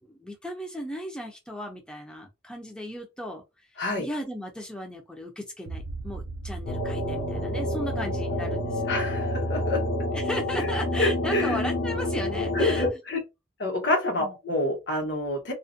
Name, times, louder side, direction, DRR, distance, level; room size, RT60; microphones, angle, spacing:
voice 1, 0.1-3.4 3.7-8.9 10.1-12.9 13.1-13.2 14.2-14.3, equal, 5° left, 0.4 m, -36 dB
sound 1, 5.7-10.0, right 3 dB, 75° right, 0.4 m, -40 dB
sound 2, 6.7-12.9, left 1 dB, 50° left, 0.6 m, -28 dB
voice 2, 8.9-9.8 10.5-10.7 11.0-11.6 12.5-13.2 13.6-15.5, left 1 dB, 75° left, 1.0 m, -27 dB
2.4 x 2.1 x 2.5 m
head